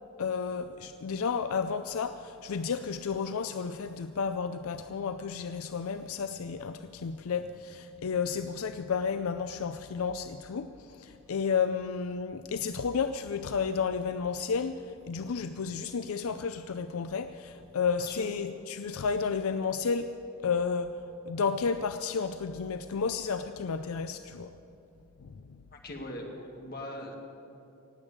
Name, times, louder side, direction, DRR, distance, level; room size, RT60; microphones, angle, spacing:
voice 1, 0.2-20.1 20.4-20.9 21.3-24.5, left 5 dB, 85° left, 10 dB, 0.5 m, -32 dB
voice 2, 25.7-27.2, left 1 dB, 45° left, 2 dB, 2.0 m, -40 dB
18.5 x 8.2 x 8.5 m, 2.8 s
head